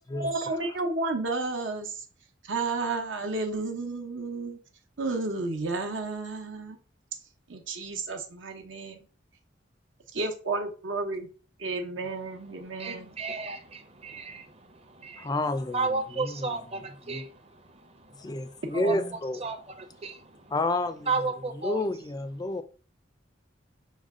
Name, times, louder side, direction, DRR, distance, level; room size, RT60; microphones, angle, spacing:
voice 1, 0.1-1.9 2.4-4.6 5.0-6.8 7.5-9.0 10.1-11.3 11.6-13.2 18.7-19.1, right 3 dB, 75° right, 0.9 m, -32 dB
voice 2, 12.5-15.3 15.7-20.5 21.1-21.8, right 3 dB, 30° right, 0.7 m, -34 dB
voice 3, 15.2-16.6 17.0-17.3 18.2-19.5 20.5-22.6, left 2 dB, 20° left, 0.3 m, -30 dB
6.3 x 2.2 x 3.6 m
head